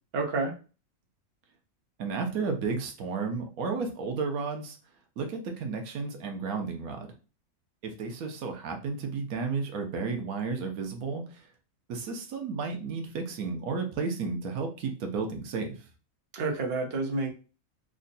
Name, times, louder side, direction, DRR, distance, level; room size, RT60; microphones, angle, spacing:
voice 1, 0.1-0.5 16.3-17.3, right 3 dB, 50° right, 2 dB, 1.0 m, -29 dB
voice 2, 2.0-4.8 5.2-7.1 7.8-11.4 11.9-15.8, right 4 dB, 85° right, 4 dB, 1.2 m, -33 dB
3.7 x 2.2 x 3.9 m, 0.34 s
omnidirectional pair, 1.5 m